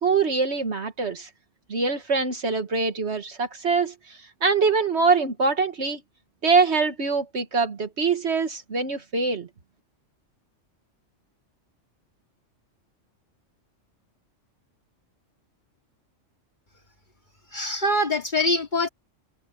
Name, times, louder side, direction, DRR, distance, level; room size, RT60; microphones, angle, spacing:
voice 1, 0.0-1.3 1.7-3.9 4.4-6.0 6.4-9.5, right 4 dB, 60° right, 1.7 m, -23 dB
voice 2, 17.5-18.9, left 1 dB, 40° left, 2.5 m, -24 dB
omnidirectional pair, 1.3 m